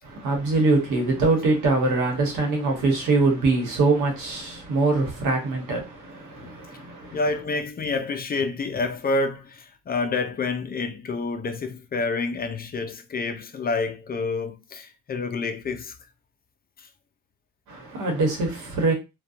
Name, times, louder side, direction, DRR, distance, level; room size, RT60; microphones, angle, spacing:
voice 1, 0.0-7.2 17.7-18.9, right 3 dB, 85° right, 1.1 m, -23 dB
voice 2, 7.1-15.9 16.8-16.9, left 3 dB, 30° left, 0.4 m, -28 dB
2.6 x 2.2 x 2.4 m
cardioid pair, 90°, 30 cm